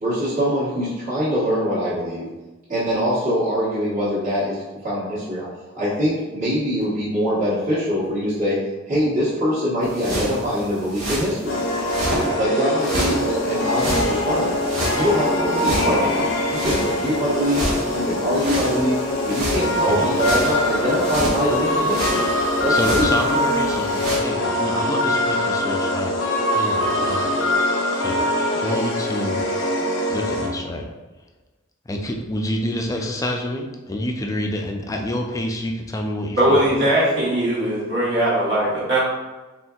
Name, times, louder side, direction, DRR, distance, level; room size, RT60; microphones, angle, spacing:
voice 1, 0.0-2.3 2.7-5.5 5.7-8.6 8.9-11.6 12.4-14.6 14.9-17.6 17.9-19.0 19.3-22.3 22.6-23.1, equal, 40° right, -12 dB, 1.2 m, -23 dB
sound 1, 9.8-12.3 12.8-24.2, equal, 90° right, 1.3 m, -29 dB
sound 2, 11.5-30.5, left 1 dB, 75° left, 0.6 m, -23 dB
voice 2, 22.7-26.2 26.5-27.3 28.0-28.2 28.5-29.4 30.1-30.9 31.9-36.6, left 1 dB, 15° left, 2 dB, 0.4 m, -27 dB
voice 3, 36.4-39.0, right 1 dB, 60° right, -9 dB, 1.2 m, -19 dB
4.3 x 3.6 x 2.3 m, 1.2 s
head